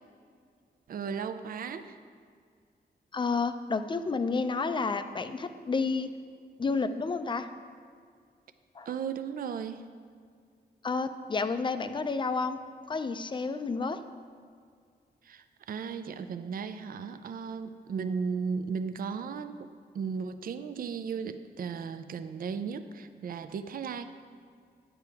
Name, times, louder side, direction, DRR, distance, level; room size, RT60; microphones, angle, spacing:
voice 1, 0.9-2.0 8.9-9.8 15.2-19.7 19.9-24.2, right 6 dB, 55° right, 10 dB, 0.4 m, -35 dB
voice 2, 3.1-6.1 6.6-7.5 8.8-8.9 10.8-12.6 12.9-14.0, left 4 dB, 25° left, 10 dB, 0.4 m, -30 dB
9.4 x 8.3 x 3.4 m, 2.1 s
wide cardioid pair, 120°, 18 cm